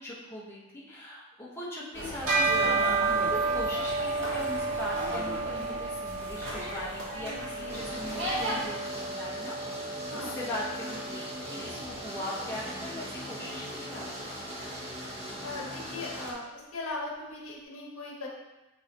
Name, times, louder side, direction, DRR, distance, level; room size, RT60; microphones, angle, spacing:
voice 1, 0.0-14.4, left 1 dB, 10° left, -7 dB, 1.2 m, -40 dB
sound 1, 1.9-8.7, equal, 55° right, 2.0 m, -36 dB
Bell, 2.3-11.9, right 4 dB, 85° right, 2.1 m, -32 dB
sound 2, 7.7-16.3, equal, 30° right, 1.0 m, -40 dB
voice 2, 10.1-10.4 15.4-16.4 16.7-18.3, left 2 dB, 75° left, -3 dB, 1.3 m, -38 dB
9.0 x 4.0 x 2.9 m, 1.1 s
head